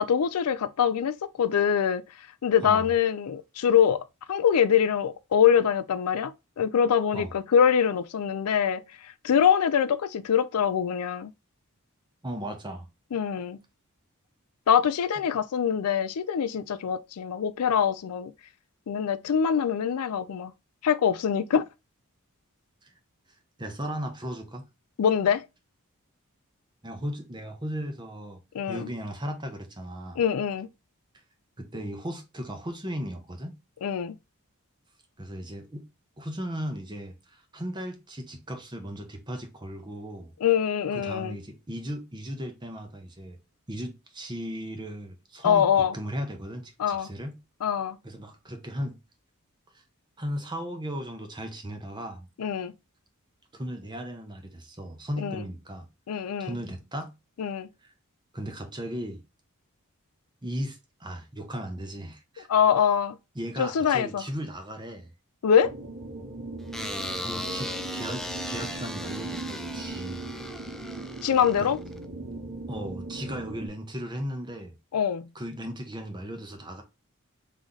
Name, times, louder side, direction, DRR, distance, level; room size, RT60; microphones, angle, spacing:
voice 1, 0.0-2.0 2.4-11.3 13.1-13.6 14.7-18.3 18.9-20.5 20.8-21.6 25.0-25.4 28.5-28.9 30.2-30.7 33.8-34.1 40.4-41.4 45.4-45.9 46.8-47.1 47.6-48.0 52.4-52.7 55.2-55.4 56.1-56.5 57.4-57.7 62.5-63.2 63.6-64.2 65.4-65.7 71.2-71.8 74.9-75.3, left 8 dB, 85° left, 0.4 m, -24 dB
voice 2, 12.2-12.9 22.8-22.9 23.6-24.6 26.8-28.4 28.7-30.2 31.6-33.6 35.2-35.8 36.2-40.3 40.9-43.4 43.7-47.4 48.0-49.0 50.2-52.3 53.5-55.9 56.4-57.1 57.8-57.9 58.3-59.2 60.4-62.5 63.3-65.1 67.2-70.3 71.6-71.7 72.7-74.8 75.3-76.8, equal, 20° right, 0.9 m, -36 dB
sound 1, 65.6-73.7, right 2 dB, 85° right, 1.9 m, -38 dB
sound 2, 66.7-72.0, left 1 dB, ahead, 0.4 m, -37 dB
3.7 x 3.2 x 3.9 m
head